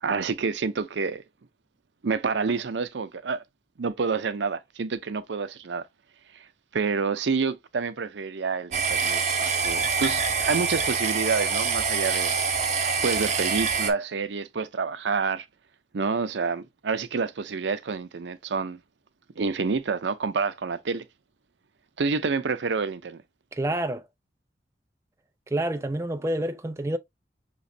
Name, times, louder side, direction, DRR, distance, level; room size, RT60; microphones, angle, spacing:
voice 1, 0.0-1.2 2.0-3.4 3.8-5.9 6.4-6.5 6.7-12.3 13.0-15.5 15.9-18.8 19.4-21.0 22.0-23.2, right 4 dB, 80° right, 0.5 m, -28 dB
sound 1, 8.7-13.9, right 5 dB, 40° right, 0.8 m, -25 dB
voice 2, 23.5-24.0 25.5-27.0, right 1 dB, 15° right, 0.3 m, -28 dB
5.8 x 3.1 x 2.6 m
head